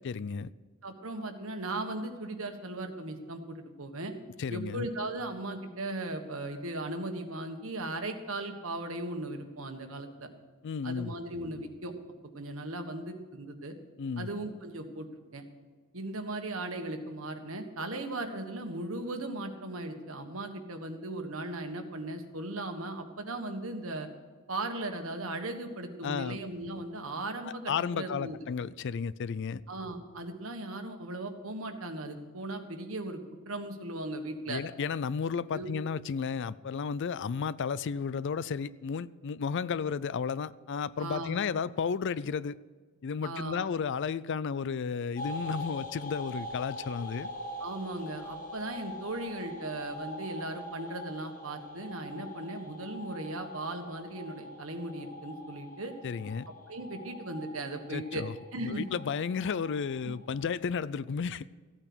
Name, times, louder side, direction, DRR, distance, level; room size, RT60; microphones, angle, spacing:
voice 1, 0.0-0.5 4.4-4.9 10.6-11.1 14.0-14.3 26.0-26.4 27.4-29.6 34.5-42.6 43.0-47.3 56.0-56.5 57.9-58.3 58.6-61.5, left 6 dB, 60° left, 19 dB, 0.4 m, -33 dB
voice 2, 0.8-4.1 4.5-10.3 10.8-11.9 12.3-13.7 14.2-15.1 15.3-15.4 15.9-24.1 24.5-28.4 29.7-33.2 33.5-34.6 35.5-35.7 41.0-41.4 43.2-43.7 47.6-55.9 56.7-58.2 58.5-58.9 60.0-60.2, right 2 dB, 70° right, 5 dB, 1.5 m, -37 dB
sound 1, 45.2-60.5, left 1 dB, 40° left, 1.8 m, -43 dB
15.0 x 9.0 x 6.2 m, 1.5 s
head